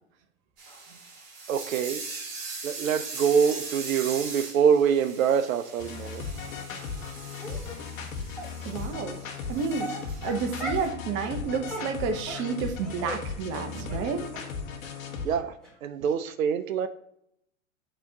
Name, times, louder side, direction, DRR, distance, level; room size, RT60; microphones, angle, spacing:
sound 1, 0.6-10.9, right 4 dB, 50° right, 1.7 m, -41 dB
voice 1, 1.5-2.0 2.6-6.2 15.2-15.6 15.8-16.9, right 7 dB, 85° right, 0.5 m, -25 dB
sound 2, 5.8-15.3, left 5 dB, 80° left, 1.0 m, -37 dB
Dog, 7.4-7.8 8.4-8.5 9.3-9.4 9.8-10.9 11.2-11.4 11.7-13.2 13.5-13.6 13.9-14.0 14.3-14.4 14.8-14.9 15.3-15.4 15.6-15.7, equal, ahead, 1.8 m, -38 dB
voice 2, 8.7-9.2 9.5-9.9 10.2-14.2, right 5 dB, 30° right, 0.6 m, -30 dB
6.8 x 2.8 x 2.7 m
hypercardioid pair, 110°, 40 cm